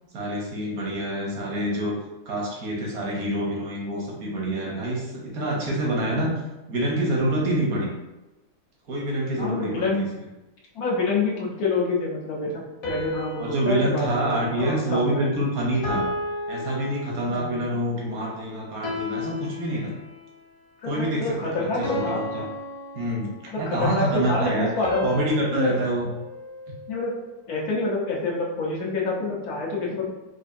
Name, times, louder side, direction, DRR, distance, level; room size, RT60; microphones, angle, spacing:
voice 1, 0.1-1.9 2.3-6.3 6.7-7.9 8.9-10.1 13.4-16.0 16.5-19.9 20.8-22.5 22.9-23.3 23.6-24.7 25.0-26.1, right 1 dB, 80° right, -3 dB, 1.4 m, -26 dB
voice 2, 9.4-10.1 10.7-15.3 17.3-17.5 20.8-22.2 23.5-25.1 25.5-25.7 26.9-27.2 27.5-30.1, left 3 dB, 80° left, -3 dB, 1.3 m, -27 dB
sound 1, 12.8-15.3 15.8-17.6 18.8-20.4 21.8-23.7 24.8-27.2, left 2 dB, 55° left, 1.1 m, -34 dB
4.7 x 2.4 x 2.6 m, 1.0 s
omnidirectional pair, 1.6 m